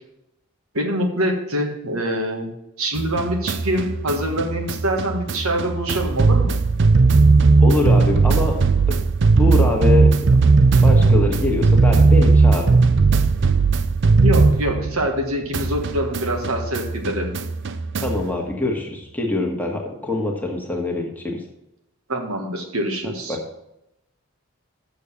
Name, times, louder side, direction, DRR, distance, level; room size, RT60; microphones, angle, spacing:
voice 1, 0.7-2.5 2.8-6.6 14.2-17.3 22.1-23.4, equal, 70° right, 2 dB, 1.6 m, -24 dB
sound 1, 3.0-15.2 15.5-18.3, right 4 dB, 55° right, 0.5 m, -17 dB
voice 2, 7.6-8.7 9.3-10.1 10.8-12.7 18.0-21.4 23.3-23.4, left 2 dB, 10° left, -1 dB, 1.5 m, -24 dB
6.7 x 6.6 x 7.0 m, 0.85 s
head